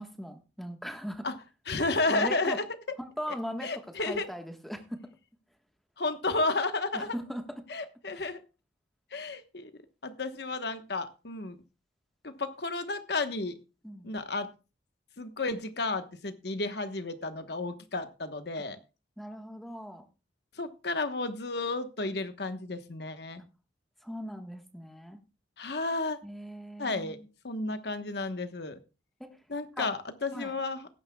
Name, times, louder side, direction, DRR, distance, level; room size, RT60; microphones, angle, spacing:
voice 1, 0.0-1.3 2.1-2.6 3.0-3.7 4.1-5.1 6.9-7.6 8.1-8.2 13.8-14.1 19.2-20.0 24.0-25.2 26.2-27.2 29.2-29.3 29.8-29.9 30.3-30.5, equal, ahead, 5 dB, 1.3 m, -39 dB
voice 2, 1.7-2.6 3.6-4.3 6.0-7.2 7.7-8.4 9.1-9.7 10.0-11.6 12.2-13.5 14.0-14.5 15.2-18.8 20.6-23.4 25.6-26.2 26.8-27.2 27.4-28.8 29.5-30.9, left 3 dB, 60° left, 9 dB, 1.1 m, -32 dB
17.5 x 9.7 x 2.3 m, 0.31 s
head